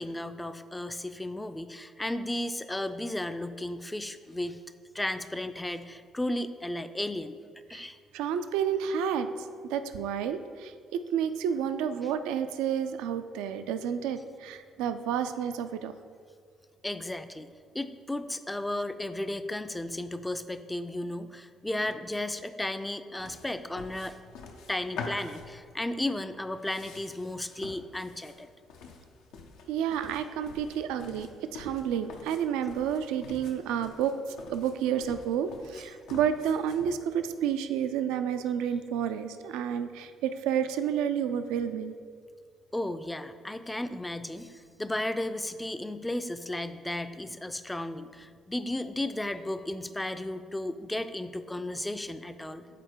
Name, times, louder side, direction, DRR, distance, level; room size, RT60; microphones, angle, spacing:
voice 1, 0.0-4.6 4.9-7.4 7.7-8.0 16.8-17.5 17.7-24.2 24.7-28.5 42.7-52.7, left 1 dB, 10° left, 11 dB, 0.4 m, -34 dB
voice 2, 8.1-9.3 9.7-15.9 29.7-34.1 34.5-41.9, right 8 dB, 80° right, 10 dB, 0.3 m, -30 dB
sound 1, 23.2-36.9, left 4 dB, 75° left, 0.6 m, -46 dB
6.7 x 4.1 x 4.6 m, 2.2 s
hypercardioid pair, 50°, 0 cm